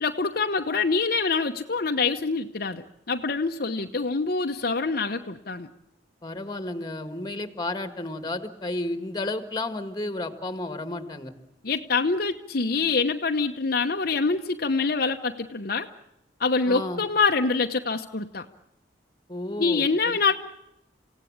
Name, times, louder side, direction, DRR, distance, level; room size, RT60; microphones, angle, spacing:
voice 1, 0.0-5.7 11.6-15.9 16.4-18.5 19.6-20.3, left 4 dB, 55° left, 4 dB, 1.0 m, -25 dB
voice 2, 6.2-11.3 16.7-17.0 19.3-19.9, left 2 dB, 25° left, 10 dB, 1.8 m, -32 dB
28.0 x 17.0 x 8.7 m, 0.84 s
head